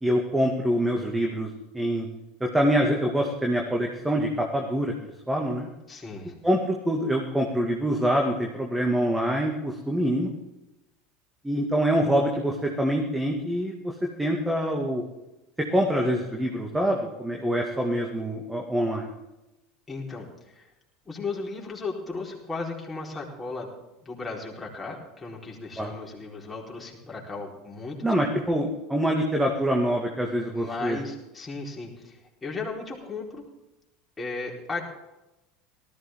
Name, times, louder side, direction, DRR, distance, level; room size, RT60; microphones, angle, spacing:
voice 1, 0.0-1.5 1.7-2.1 2.4-5.7 6.4-10.3 11.4-13.9 14.2-15.0 15.7-19.1 25.8-25.9 28.0-31.0, equal, 10° right, 1 dB, 2.3 m, -25 dB
voice 2, 5.9-6.4 19.9-20.7 21.0-23.7 24.0-28.1 30.5-33.4 34.2-34.8, left 3 dB, 15° left, -2 dB, 4.6 m, -36 dB
18.5 x 14.0 x 3.9 m, 0.96 s
figure-of-eight pair, 75°, 0 cm